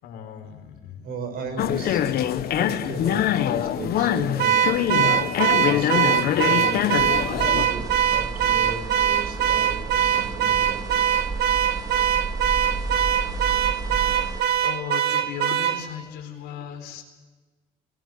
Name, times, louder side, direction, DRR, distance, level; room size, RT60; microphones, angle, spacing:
voice 1, 0.0-1.1 14.6-17.0, left 8 dB, 85° left, 3 dB, 4.1 m, -36 dB
voice 2, 1.0-2.3 2.5-4.6 5.1-5.4 5.7-6.8 7.2-10.8, right 4 dB, 65° right, 8 dB, 5.8 m, -36 dB
sound 1, 1.6-7.7, left 10 dB, 65° left, 1.3 m, -24 dB
Car / Alarm, 4.4-15.8, right 10 dB, 80° right, 1.6 m, -22 dB
sound 2, 7.0-14.4, right 3 dB, 20° right, 3.6 m, -32 dB
20.0 x 19.5 x 8.0 m, 1.3 s
cardioid pair, 110°, 17 cm